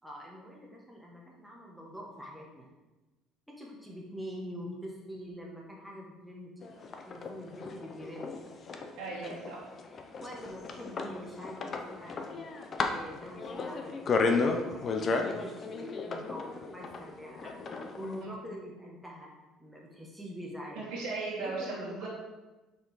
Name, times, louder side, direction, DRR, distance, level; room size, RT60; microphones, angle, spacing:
voice 1, 0.0-2.7 3.5-6.7 7.1-8.3 10.2-12.5 12.8-17.5 18.0-19.3 19.6-20.9 21.4-22.1, equal, ahead, -3 dB, 1.1 m, -45 dB
sound 1, 6.6-18.2, left 4 dB, 30° left, 0.6 m, -34 dB
voice 2, 9.0-9.6 20.7-22.1, right 3 dB, 85° right, -8 dB, 1.6 m, -37 dB
6.0 x 4.5 x 4.7 m, 1.1 s
cardioid pair, 150°, 0 cm